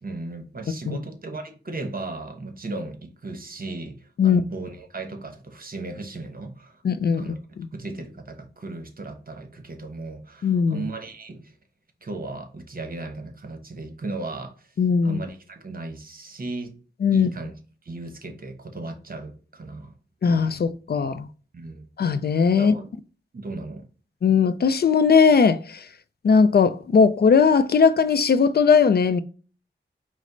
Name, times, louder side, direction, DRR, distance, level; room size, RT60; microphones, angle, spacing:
voice 1, 0.0-6.8 7.2-7.4 7.7-11.5 12.0-14.7 15.0-16.7 17.1-17.6 17.8-19.9 21.5-21.9 22.6-22.9 23.3-23.9, right 2 dB, 50° right, 0.9 m, -36 dB
voice 2, 6.8-7.3 10.4-10.8 14.8-15.2 17.0-17.3 20.2-21.3 22.0-22.7 24.2-25.8 26.2-29.2, left 5 dB, 55° left, 0.4 m, -19 dB
5.0 x 2.1 x 3.7 m
cardioid pair, 55°, 19 cm